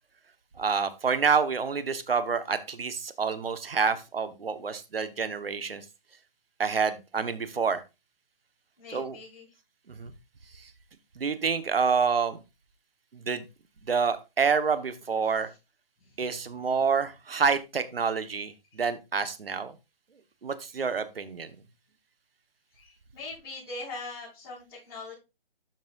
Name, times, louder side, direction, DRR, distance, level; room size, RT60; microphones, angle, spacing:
voice 1, 0.6-5.8 6.6-7.8 8.9-9.2 9.9-10.1 10.6-10.7 11.2-12.4 13.1-13.4 13.9-15.5 16.2-19.7 20.4-21.5, right 5 dB, 75° right, 11 dB, 1.5 m, -28 dB
voice 2, 8.8-9.5 16.0-16.1 18.7-18.8 22.7-25.1, left 3 dB, 25° left, -11 dB, 5.6 m, -41 dB
12.5 x 6.0 x 2.6 m, 0.26 s
hypercardioid pair, 170°, 29 cm